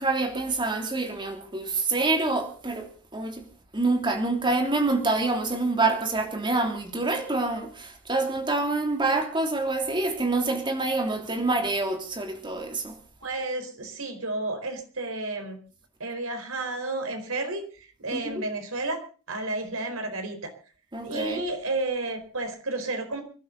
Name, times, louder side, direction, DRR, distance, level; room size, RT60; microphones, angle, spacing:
voice 1, 0.0-3.4 3.7-13.0 18.1-18.5 20.9-21.4, right 3 dB, 20° right, 4 dB, 3.1 m, -26 dB
voice 2, 13.2-15.6 16.0-19.0 19.3-20.5 21.0-23.2, right 2 dB, 80° right, 6 dB, 4.4 m, -31 dB
26.0 x 12.0 x 4.0 m, 0.39 s
head